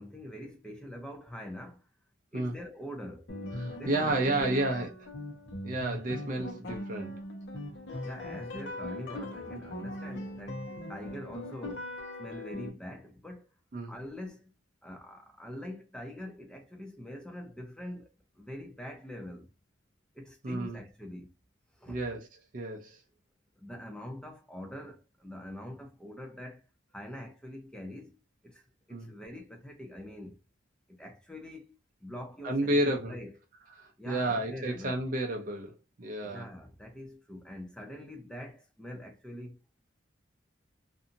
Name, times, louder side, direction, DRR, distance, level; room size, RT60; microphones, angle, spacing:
voice 1, 0.0-1.8 2.3-3.3 3.8-4.9 8.0-13.5 13.9-14.5 14.8-19.5 20.1-21.3 21.8-22.0 23.6-26.6 26.9-28.2 28.4-30.4 30.9-31.8 32.0-33.4 34.0-35.0 36.2-39.6, left 1 dB, 5° left, 0.5 m, -44 dB
sound 1, 3.3-12.7, left 1 dB, 60° left, 0.8 m, -40 dB
voice 2, 3.6-4.9 5.6-7.1 13.7-13.9 20.4-20.8 21.9-22.3 22.5-23.0 28.9-29.1 32.4-33.2 33.8-35.7 36.0-36.5, right 1 dB, 40° right, 0.5 m, -31 dB
2.7 x 2.6 x 2.5 m
head